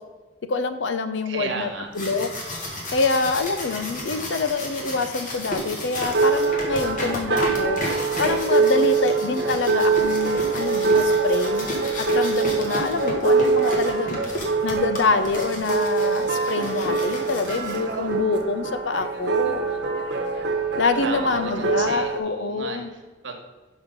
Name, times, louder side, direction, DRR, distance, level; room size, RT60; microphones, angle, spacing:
voice 1, 0.5-1.7 1.9-2.3 2.9-7.8 8.2-11.7 12.0-14.2 14.6-19.7 20.7-22.9, left 3 dB, 75° left, 10 dB, 0.6 m, -26 dB
voice 2, 1.2-1.9 21.0-23.4, right 4 dB, 90° right, 3 dB, 1.3 m, -34 dB
sound 1, 1.7-18.1, equal, 45° left, 1.5 m, -33 dB
sound 2, 6.1-22.2, right 4 dB, 65° right, 1.1 m, -24 dB
6.2 x 5.6 x 5.2 m, 1.3 s
head